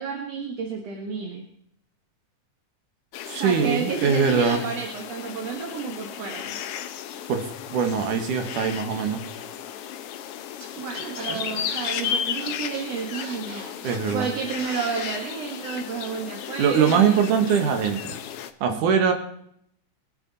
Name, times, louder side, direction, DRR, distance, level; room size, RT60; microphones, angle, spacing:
voice 1, 0.0-1.5 3.4-6.6 10.8-13.7 14.1-17.5 18.7-19.0, right 5 dB, 55° right, 2 dB, 2.6 m, -31 dB
sound 1, 3.1-18.5, left 9 dB, 80° left, 1.3 m, -34 dB
voice 2, 3.3-4.6 7.3-7.4 7.7-9.2 11.3-11.4 13.8-14.3 16.6-18.2 18.6-19.1, right 6 dB, 80° right, 5 dB, 3.1 m, -22 dB
Scratching (performance technique), 10.6-10.7 10.9-14.3 14.6-15.1, right 1 dB, 15° right, 2.6 m, -40 dB
22.5 x 9.2 x 4.2 m, 0.69 s
omnidirectional pair, 3.6 m